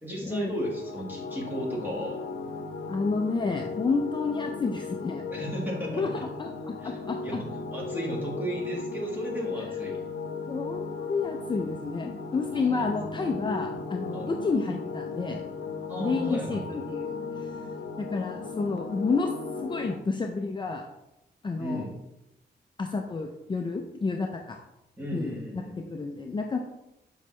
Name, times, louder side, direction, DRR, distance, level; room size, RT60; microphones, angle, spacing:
voice 1, 0.0-2.2 5.3-6.1 6.8-7.0 7.2-7.4 7.7-10.1 12.5-12.8 14.1-14.3 15.9-16.6 21.6-21.9 25.0-25.8, equal, 10° right, -3 dB, 1.7 m, -34 dB
sound 1, 0.5-19.9, left 4 dB, 90° left, 0.7 m, -37 dB
voice 2, 2.9-5.2 6.0-7.4 10.5-15.4 16.0-17.6 18.0-19.3 19.6-20.8 21.4-21.9 22.8-24.6 25.1-25.6 25.9-26.6, left 4 dB, 25° left, 2 dB, 0.5 m, -30 dB
7.0 x 5.5 x 3.1 m, 0.90 s
wide cardioid pair, 150°, 18 cm